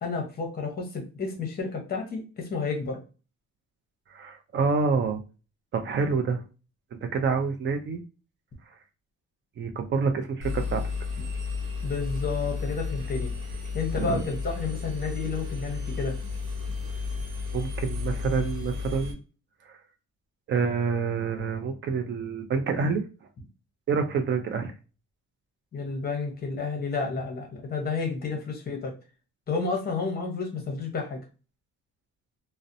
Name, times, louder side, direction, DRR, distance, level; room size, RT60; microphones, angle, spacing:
voice 1, 0.0-3.0 11.8-13.3 13.7-16.3 25.7-28.9 29.5-31.2, left 4 dB, 30° left, 2 dB, 0.7 m, -31 dB
voice 2, 4.1-5.2 5.7-6.4 7.0-8.0 9.6-10.8 14.0-14.2 17.5-19.2 19.7-19.8 20.5-23.1 23.9-24.7, right 5 dB, 40° right, 5 dB, 0.4 m, -27 dB
Engine, 10.4-19.1, left 4 dB, 80° right, 0.8 m, -32 dB
2.7 x 2.0 x 2.5 m, 0.34 s
cardioid pair, 160°, 32 cm